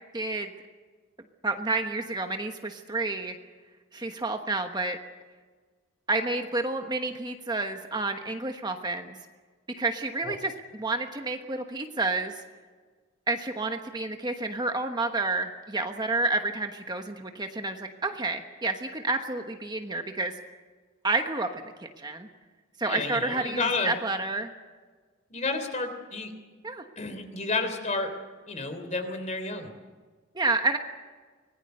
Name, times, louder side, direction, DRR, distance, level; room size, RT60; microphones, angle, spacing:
voice 1, 0.1-0.5 1.4-3.3 3.9-5.0 6.1-9.2 9.8-12.4 13.3-20.3 21.0-22.3 22.8-24.5 26.6-26.8 30.3-30.8, right 3 dB, 20° right, 5 dB, 1.2 m, -30 dB
voice 2, 22.9-23.9 25.3-26.3 27.0-28.1 28.5-29.7, left 3 dB, 35° left, 8 dB, 3.3 m, -31 dB
25.0 x 19.5 x 6.7 m, 1.4 s
head